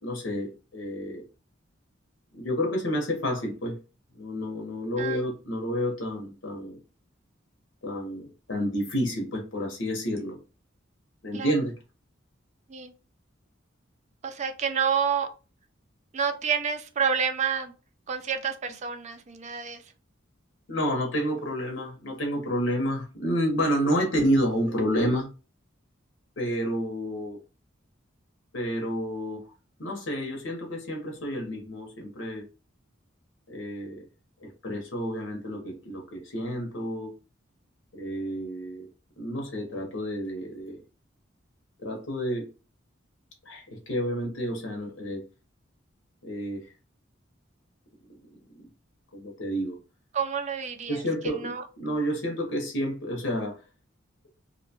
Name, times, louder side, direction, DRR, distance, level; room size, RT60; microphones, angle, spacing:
voice 1, 0.0-1.2 2.3-3.7 4.1-6.8 7.8-10.4 11.2-11.7 20.7-25.3 26.4-27.4 28.5-29.4 29.8-32.4 33.5-34.1 34.4-37.1 37.9-38.9 39.2-40.8 41.8-42.5 43.5-45.2 46.2-46.6 48.5-48.7 49.1-49.8 50.9-53.6, equal, 80° left, 0.8 m, -30 dB
voice 2, 14.2-15.3 16.1-17.7 18.1-19.8 50.1-51.6, right 7 dB, 35° right, 0.3 m, -29 dB
2.7 x 2.1 x 2.7 m
head